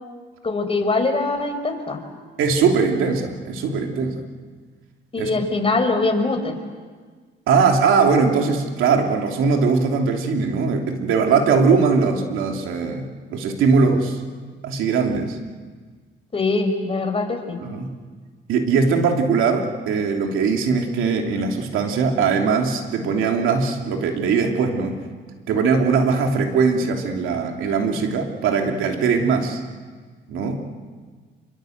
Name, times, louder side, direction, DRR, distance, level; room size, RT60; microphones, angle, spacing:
voice 1, 0.4-2.0 5.1-6.6 16.3-17.6, left 3 dB, 30° left, 4 dB, 5.1 m, -22 dB
voice 2, 2.4-4.2 5.2-5.3 7.5-14.2 14.6-15.4 17.6-17.9 18.5-25.0 25.5-29.6 30.3-30.6, right 5 dB, 90° right, 3 dB, 3.1 m, -20 dB
27.0 x 24.0 x 8.0 m, 1.5 s
cardioid pair, 90°, 20 cm